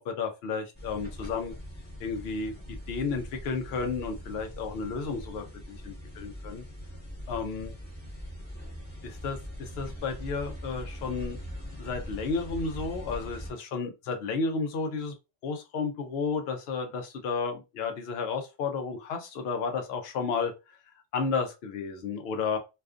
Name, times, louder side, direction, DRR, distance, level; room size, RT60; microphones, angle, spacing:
voice 1, 0.0-1.5 2.0-6.6 7.3-7.7 9.0-11.4 11.8-15.1 15.4-20.8 21.1-22.6, left 4 dB, 80° left, 0.8 m, -32 dB
sound 1, 0.7-13.5, equal, 10° left, 0.9 m, -41 dB
2.4 x 2.4 x 2.3 m
omnidirectional pair, 1.0 m